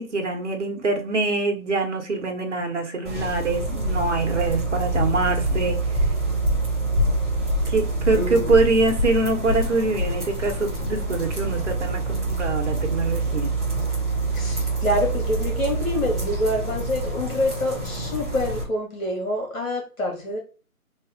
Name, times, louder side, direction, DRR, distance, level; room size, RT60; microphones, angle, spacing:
voice 1, 0.0-5.8 7.7-13.5, right 3 dB, 50° right, 3 dB, 1.0 m, -24 dB
sound 1, 3.0-18.6, right 2 dB, ahead, 0.5 m, -26 dB
voice 2, 8.1-8.7 14.3-20.4, left 1 dB, 65° left, 1 dB, 2.0 m, -26 dB
3.5 x 2.7 x 3.6 m, 0.36 s
figure-of-eight pair, 160°, 44 cm